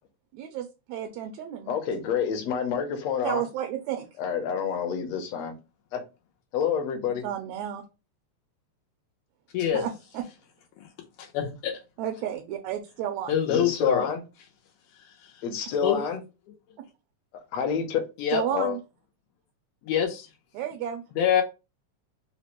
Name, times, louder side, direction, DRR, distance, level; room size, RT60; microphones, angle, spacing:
voice 1, 0.3-1.7 3.2-4.1 7.2-7.8 9.7-10.2 12.0-13.4 16.8-16.9 18.3-18.8 20.5-21.0, right 10 dB, 80° right, 1.7 m, -32 dB
voice 2, 1.7-3.4 4.2-5.5 5.9-6.0 6.5-7.2 13.5-14.2 15.4-16.2 17.5-18.0 18.5-18.8, left 7 dB, 70° left, 1.8 m, -28 dB
voice 3, 9.5-9.8 10.8-10.9 11.2-11.8 13.3-14.1 15.2-15.4 15.8-16.0 18.2-18.4 19.8-20.3 21.1-21.4, left 9 dB, 85° left, 2.2 m, -25 dB
5.1 x 2.1 x 2.9 m
omnidirectional pair, 3.4 m